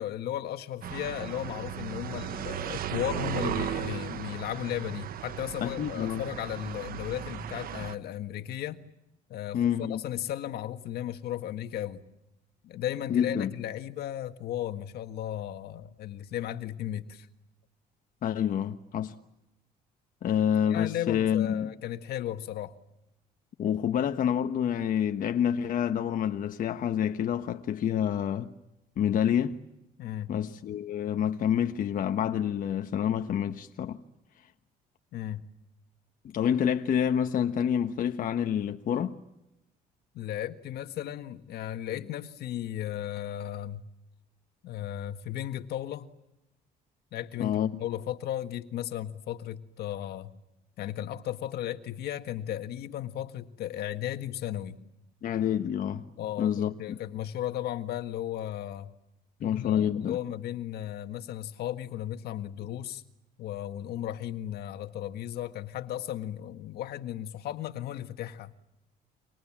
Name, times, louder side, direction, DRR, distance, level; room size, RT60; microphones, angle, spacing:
voice 1, 0.0-8.8 9.3-12.0 12.6-17.3 20.7-22.8 30.0-30.3 35.1-35.4 40.1-43.8 44.6-46.1 47.1-50.3 50.8-54.8 56.2-58.9 59.6-63.0 63.4-68.5, left 11 dB, 70° left, 1.7 m, -35 dB
sound 1, 0.8-7.9, right 10 dB, 60° right, 1.2 m, -36 dB
voice 2, 5.6-6.2 9.5-10.0 13.1-13.5 18.2-19.1 20.2-21.7 23.6-28.5 29.0-29.6 30.3-34.0 36.2-39.2 47.4-47.8 55.2-56.1 56.4-57.0 59.4-60.2, left 9 dB, 55° left, 1.3 m, -28 dB
30.0 x 25.5 x 7.5 m
cardioid pair, 110°, 17 cm